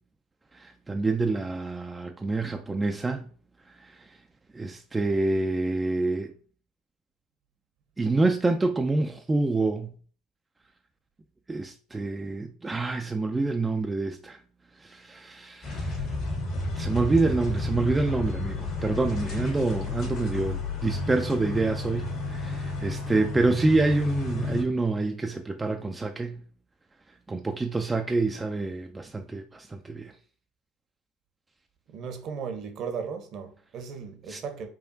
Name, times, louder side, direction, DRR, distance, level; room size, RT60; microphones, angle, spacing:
voice 1, 0.5-3.3 3.8-4.1 4.5-6.3 8.0-9.9 11.5-14.4 14.8-16.1 16.4-16.5 16.8-26.4 27.3-30.1 34.3-34.4, right 3 dB, 15° right, 0.3 m, -27 dB
sound 1, 15.6-24.6, left 3 dB, 55° left, 1.4 m, -32 dB
voice 2, 31.9-34.7, right 6 dB, 50° right, 0.7 m, -36 dB
4.9 x 2.3 x 2.6 m
hypercardioid pair, 75°, 0 cm